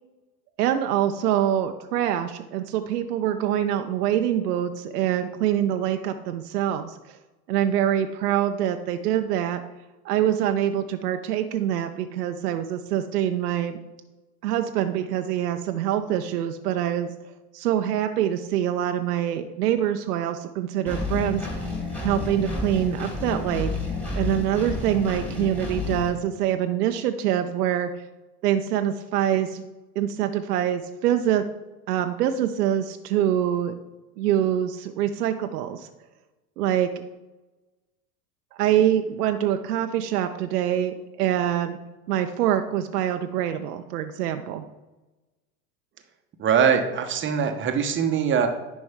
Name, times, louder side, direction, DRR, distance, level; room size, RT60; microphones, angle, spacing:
voice 1, 0.6-7.2 7.5-9.6 10.0-13.8 14.4-17.1 17.5-21.5 22.0-23.7 24.1-27.9 28.4-29.6 30.0-31.5 31.9-33.7 34.2-35.9 36.6-36.9 38.5-41.8 42.1-44.6, right 10 dB, 70° right, 7 dB, 0.7 m, -25 dB
Engine, 20.9-26.1, left 3 dB, 5° left, 2.0 m, -30 dB
voice 2, 46.4-48.5, right 7 dB, 25° right, 5 dB, 0.9 m, -22 dB
10.5 x 5.2 x 3.5 m, 1.1 s
hypercardioid pair, 95°, 49 cm